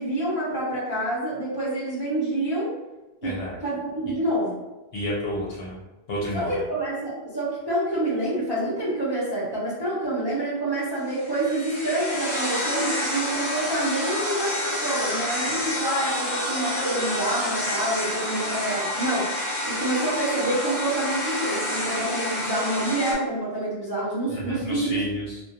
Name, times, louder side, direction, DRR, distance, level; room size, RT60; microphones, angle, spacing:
voice 1, 0.0-2.7 3.2-3.3 3.6-4.6 6.3-19.3 19.6-25.0, right 1 dB, 25° right, -11 dB, 0.6 m, -27 dB
voice 2, 3.2-3.6 4.9-5.8 6.1-6.6 24.3-25.4, equal, 75° left, -5 dB, 0.8 m, -30 dB
sound 1, 11.1-23.1, left 1 dB, 25° left, 0.7 m, -29 dB
2.4 x 2.1 x 2.8 m, 1.1 s
omnidirectional pair, 1.1 m